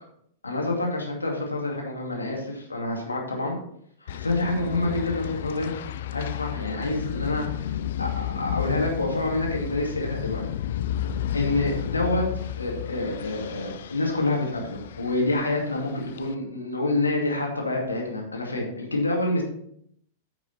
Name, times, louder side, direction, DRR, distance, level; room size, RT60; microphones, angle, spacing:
voice 1, 0.4-3.5 4.0-5.7 6.1-7.7 8.0-10.4 11.3-12.2 12.6-19.4, left 2 dB, 80° left, 0 dB, 2.3 m, -27 dB
sound 1, 4.1-16.3, left 10 dB, 55° left, 0.5 m, -32 dB
9.7 x 6.0 x 4.3 m, 0.70 s
figure-of-eight pair, 95°, 0 cm